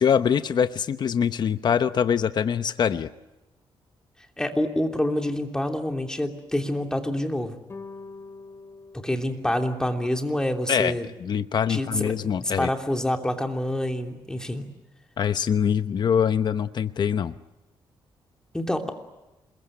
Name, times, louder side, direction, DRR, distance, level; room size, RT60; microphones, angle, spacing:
voice 1, 0.0-3.1 10.7-12.7 15.2-17.3, left 8 dB, 50° left, 11 dB, 0.9 m, -24 dB
voice 2, 4.4-7.6 8.9-11.1 11.7-14.7 18.5-18.9, left 1 dB, 5° left, 4 dB, 3.0 m, -27 dB
sound 1, 7.7-10.2, left 3 dB, 30° left, 2.6 m, -44 dB
27.0 x 21.5 x 10.0 m, 1.0 s
cardioid pair, 110°, 9 cm